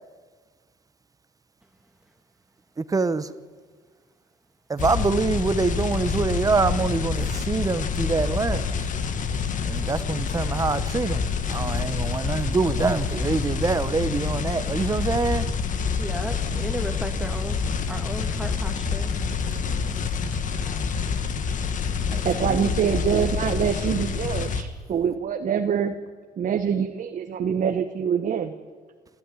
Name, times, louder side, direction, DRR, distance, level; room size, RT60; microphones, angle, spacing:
voice 1, 2.8-3.3 4.7-8.9 9.7-15.5 19.4-20.0 22.1-22.7, right 4 dB, 20° right, 1.0 m, -25 dB
sound 1, 4.8-24.6, left 5 dB, 50° left, 1.8 m, -27 dB
voice 2, 16.0-19.1 20.6-20.9, right 1 dB, 5° right, 2.4 m, -35 dB
voice 3, 22.2-26.0 26.4-28.5, right 7 dB, 50° right, 1.3 m, -25 dB
27.5 x 13.5 x 10.0 m
cardioid pair, 110°, 17 cm